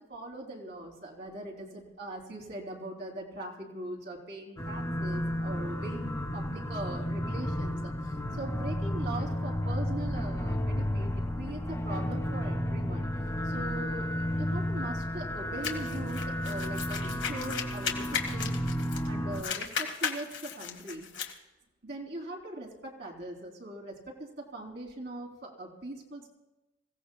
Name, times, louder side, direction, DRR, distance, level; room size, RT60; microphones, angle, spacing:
voice 1, 0.1-13.1 13.4-18.6 19.1-21.1 21.8-26.3, right 1 dB, 60° right, 0 dB, 3.1 m, -41 dB
sound 1, 4.6-19.4, equal, 20° left, 1.7 m, -32 dB
sound 2, 15.6-19.1 19.3-21.3, left 6 dB, 65° left, 1.6 m, -36 dB
26.0 x 16.5 x 2.3 m, 1.0 s
head